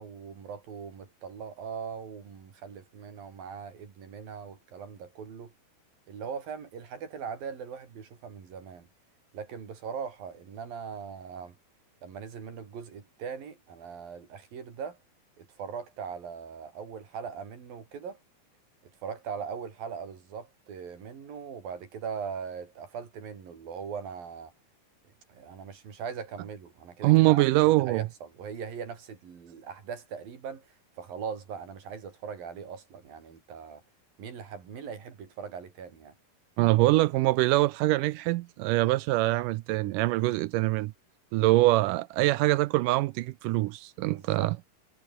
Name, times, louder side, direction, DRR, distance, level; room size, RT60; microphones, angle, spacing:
voice 1, 0.0-5.5 6.1-8.9 9.3-11.6 12.0-15.0 15.4-18.2 19.0-24.5 25.0-27.4 27.8-33.8 34.2-36.1 44.0-44.5, right 6 dB, 65° right, 5.3 m, -40 dB
voice 2, 27.0-28.0 36.6-40.9 41.3-44.6, right 18 dB, 85° right, 1.9 m, -24 dB
omnidirectional pair, 4.4 m